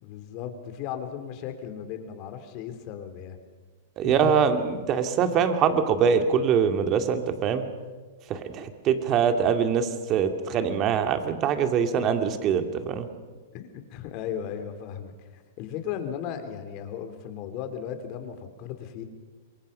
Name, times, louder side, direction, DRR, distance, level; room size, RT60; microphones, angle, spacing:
voice 1, 0.0-3.4 4.0-4.3 13.5-19.0, left 9 dB, 45° left, 7 dB, 3.3 m, -36 dB
voice 2, 4.0-7.6 8.3-13.1, right 7 dB, 35° right, 7 dB, 2.5 m, -23 dB
27.0 x 23.0 x 5.7 m, 1.4 s
hypercardioid pair, 130°, 0 cm